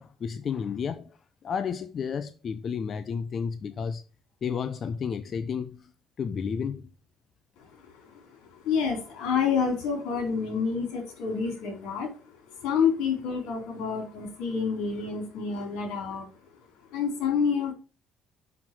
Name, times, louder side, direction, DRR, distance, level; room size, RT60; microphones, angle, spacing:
voice 1, 0.0-4.0 4.4-5.9 6.2-6.9, left 6 dB, 40° left, 0.5 m, -32 dB
voice 2, 8.6-12.1 12.6-16.3 16.9-17.7, left 6 dB, 80° left, 3.8 m, -28 dB
5.9 x 5.8 x 6.0 m
cardioid pair, 125°, 0 cm